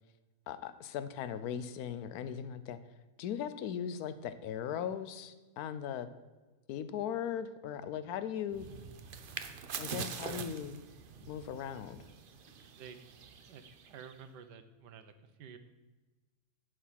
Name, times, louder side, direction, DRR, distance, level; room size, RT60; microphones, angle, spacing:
voice 1, 0.5-2.8 3.2-6.1 6.7-8.7 9.8-10.7 11.2-12.0, left 9 dB, 70° left, 12 dB, 1.1 m, -38 dB
sound 1, 8.5-14.3, right 6 dB, 65° right, 0.5 m, -45 dB
voice 2, 13.5-15.6, right 7 dB, 90° right, 9 dB, 1.5 m, -50 dB
10.0 x 4.8 x 7.5 m, 1.2 s
omnidirectional pair, 1.8 m